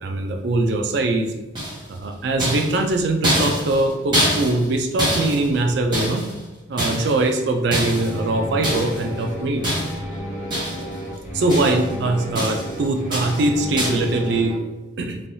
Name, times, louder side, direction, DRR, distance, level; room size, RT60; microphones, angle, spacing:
voice 1, 0.0-1.3 1.9-6.2 6.7-9.6 11.3-14.6 15.0-15.2, right 2 dB, 60° right, 5 dB, 0.3 m, -22 dB
sound 1, 1.5-2.0 2.4-6.4 6.8-7.3 7.7-8.2 8.6-9.1 9.6-10.1 10.5-11.0 11.2-11.9 12.3-12.8 13.1-13.5 13.8-14.1, equal, 25° right, 0.8 m, -25 dB
sound 2, 7.8-14.5, equal, 35° left, 0.9 m, -32 dB
3.2 x 2.2 x 2.6 m, 1.1 s
head